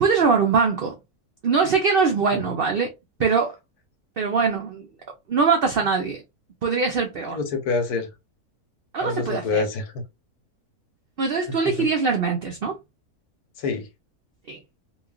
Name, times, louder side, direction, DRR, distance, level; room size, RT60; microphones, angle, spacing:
voice 1, 0.0-0.9 1.4-2.9 3.2-3.6 4.2-4.9 5.3-6.2 6.6-7.4 8.9-9.6 11.2-12.8 14.5-14.6, right 5 dB, 75° right, 0.5 m, -22 dB
voice 2, 7.2-8.1 9.0-10.0 11.5-11.9 13.6-13.9, left 4 dB, 85° left, 1.4 m, -27 dB
3.0 x 2.4 x 2.3 m
omnidirectional pair, 1.6 m